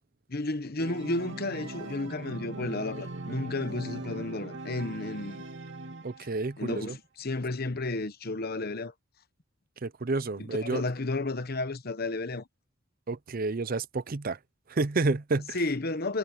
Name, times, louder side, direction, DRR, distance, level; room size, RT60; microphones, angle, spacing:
voice 1, 0.3-5.4 6.6-8.9 10.4-12.4 15.5-16.2, left 2 dB, 45° left, 1.1 m, -32 dB
Organ, 0.8-6.5, right 2 dB, 60° right, 2.7 m, -40 dB
voice 2, 6.0-7.0 9.8-10.8 13.1-14.4 14.7-15.6, right 3 dB, 45° right, 0.6 m, -30 dB
head